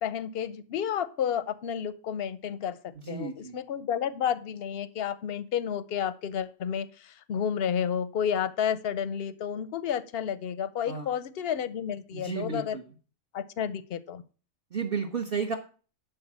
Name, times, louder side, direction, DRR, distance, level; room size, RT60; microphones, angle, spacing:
voice 1, 0.0-2.8 3.1-12.8 13.3-14.2, left 8 dB, 55° left, 15 dB, 0.8 m, -31 dB
voice 2, 3.0-3.6 10.9-11.1 12.1-12.8 14.7-15.6, right 5 dB, 45° right, 5 dB, 1.1 m, -32 dB
11.5 x 4.0 x 7.4 m, 0.38 s
omnidirectional pair, 1.5 m